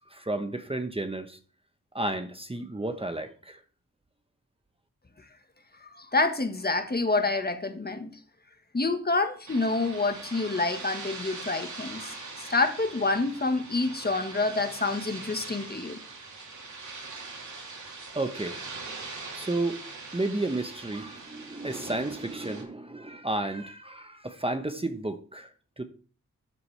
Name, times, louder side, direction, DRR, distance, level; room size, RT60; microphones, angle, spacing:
voice 1, 0.0-1.4 1.9-3.6 18.1-19.0 19.3-19.8 20.1-25.8, right 2 dB, 15° right, 1.0 m, -32 dB
voice 2, 5.8-8.1 8.7-16.0, left 3 dB, 30° left, 1.5 m, -28 dB
sound 1, 9.5-22.6, right 3 dB, 60° right, 3.1 m, -42 dB
13.0 x 7.9 x 3.4 m
cardioid pair, 70°, 32 cm